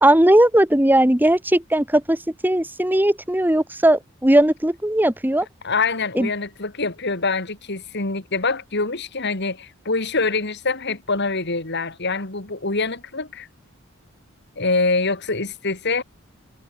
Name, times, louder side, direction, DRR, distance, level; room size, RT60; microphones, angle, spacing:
voice 1, 0.0-5.5 6.1-6.3, right 1 dB, 10° right, 1.3 m, -18 dB
voice 2, 5.6-13.5 14.6-16.0, left 3 dB, 55° left, 3.1 m, -25 dB
head